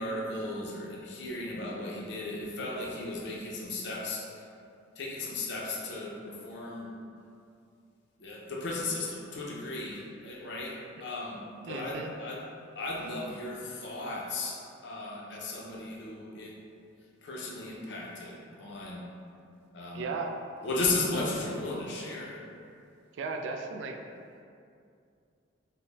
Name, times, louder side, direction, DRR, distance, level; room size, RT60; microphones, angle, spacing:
voice 1, 0.0-4.3 5.0-6.9 8.2-12.5 12.8-16.6 17.2-19.1 19.7-20.1 20.6-22.4, left 2 dB, 60° left, -3 dB, 0.5 m, -35 dB
voice 2, 11.7-12.1 19.9-20.3 23.2-24.0, right 4 dB, 65° right, 3 dB, 0.3 m, -35 dB
4.0 x 2.1 x 3.2 m, 2.4 s
head